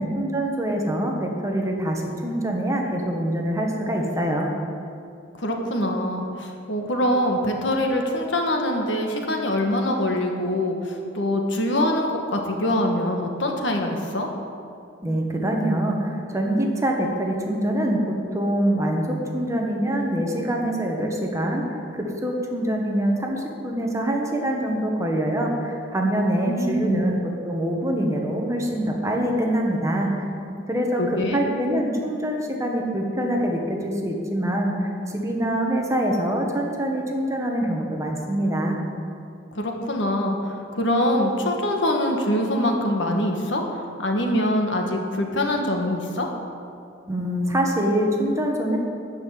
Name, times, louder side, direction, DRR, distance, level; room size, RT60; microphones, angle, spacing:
voice 1, 0.0-4.5 15.0-27.2 27.4-30.3 30.7-38.8 47.1-48.8, right 1 dB, 15° right, 0 dB, 1.5 m, -24 dB
voice 2, 5.4-14.3 26.5-27.1 31.0-31.4 39.5-43.6 44.0-46.3, left 1 dB, 75° left, 2 dB, 1.6 m, -24 dB
13.0 x 5.7 x 9.4 m, 2.5 s
head